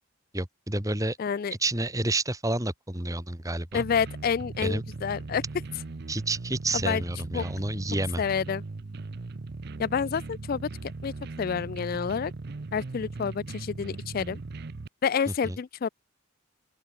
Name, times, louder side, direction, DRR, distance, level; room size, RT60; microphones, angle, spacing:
voice 1, 0.3-1.2 1.6-3.8 4.6-4.8 6.1-8.2 15.3-15.6, right 2 dB, 15° right, 2.2 m, -29 dB
voice 2, 1.2-1.5 3.7-5.4 6.8-7.0 7.3-7.4 8.2-8.6 9.8-10.7 11.0-11.1 11.4-12.3 12.7-14.4 15.0-15.9, left 6 dB, 45° left, 0.3 m, -28 dB
sound 1, 3.7-14.9, right 3 dB, 50° right, 0.6 m, -39 dB
open air
head